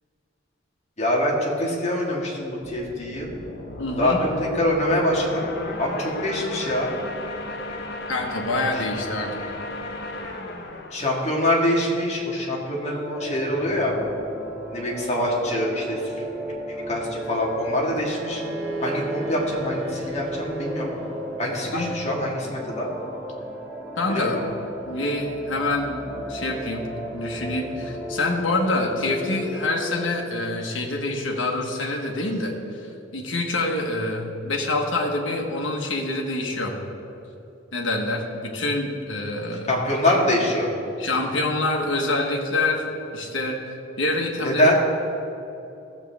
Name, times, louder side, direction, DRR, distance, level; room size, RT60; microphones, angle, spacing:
voice 1, 1.0-3.3 4.0-5.5 5.8-6.9 10.9-13.9 14.7-16.0 16.9-18.4 18.8-20.9 21.4-22.9 24.1-24.4 39.7-40.7 44.4-44.7, left 1 dB, 35° left, -2 dB, 1.9 m, -24 dB
sound 1, 2.6-12.1, left 2 dB, 60° left, 1.0 m, -35 dB
voice 2, 3.8-4.2 8.1-9.4 21.7-22.0 24.0-24.4 24.9-26.8 27.1-36.8 37.7-39.7 41.0-42.8 43.1-44.7, left 2 dB, 75° left, 0 dB, 1.5 m, -26 dB
sound 2, 13.1-30.1, right 1 dB, 10° right, 1.6 m, -34 dB
Wind instrument woodwind instrument, 18.0-21.5, left 1 dB, 75° right, 1.3 m, -36 dB
15.0 x 7.5 x 3.5 m, 2.9 s
head